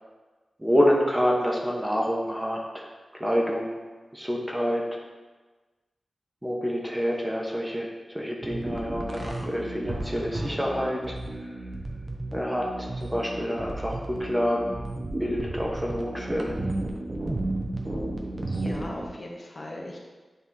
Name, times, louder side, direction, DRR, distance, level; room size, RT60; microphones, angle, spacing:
voice 1, 0.6-3.8 4.1-5.0 6.4-11.7 12.3-14.8 15.2-16.6, equal, 10° right, -2 dB, 1.1 m, -27 dB
sound 1, 8.4-19.1, right 2 dB, 45° right, 0.8 m, -33 dB
voice 2, 18.5-20.0, left 1 dB, 50° left, -2 dB, 1.0 m, -39 dB
8.3 x 3.0 x 3.9 m, 1.3 s
wide cardioid pair, 65°, 0 cm